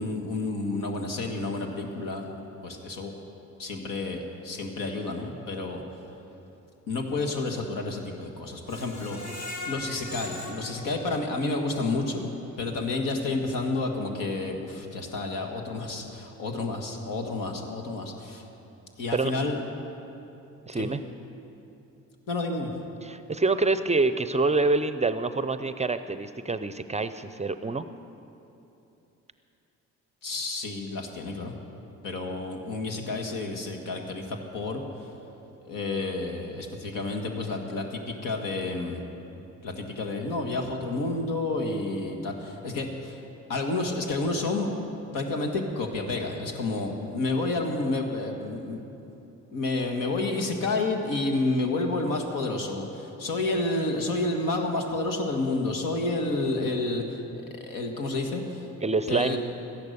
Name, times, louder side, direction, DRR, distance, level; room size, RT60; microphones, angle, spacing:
voice 1, 0.0-2.4 2.6-3.1 3.6-5.8 6.9-9.2 9.6-12.2 12.6-18.5 19.0-19.6 20.8-20.9 22.3-22.7 30.2-31.5 32.0-34.8 35.7-39.0 39.6-43.2 43.5-44.7 45.1-48.8 49.5-57.2 57.5-58.7 59.1-59.4, left 2 dB, 75° left, 3 dB, 1.8 m, -30 dB
Screech, 8.7-11.7 12.1-12.2 12.6-12.7, left 2 dB, 50° left, 2.4 m, -40 dB
voice 2, 20.7-21.0 23.0-27.9 58.8-59.4, right 3 dB, 20° right, 11 dB, 0.5 m, -26 dB
13.5 x 10.5 x 6.7 m, 2.9 s
supercardioid pair, 70°, 33 cm